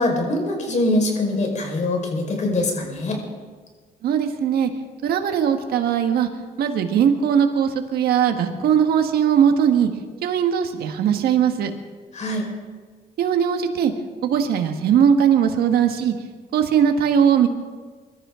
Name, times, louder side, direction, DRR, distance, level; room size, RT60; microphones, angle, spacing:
voice 1, 0.0-3.2 12.1-12.5, left 2 dB, 50° left, 1 dB, 5.0 m, -23 dB
voice 2, 4.0-4.7 5.0-6.3 6.6-9.9 10.2-11.7 13.2-13.9 14.2-16.1 16.5-17.5, right 8 dB, 80° right, 5 dB, 1.6 m, -19 dB
23.5 x 13.5 x 3.8 m, 1.5 s
cardioid pair, 85°, 16 cm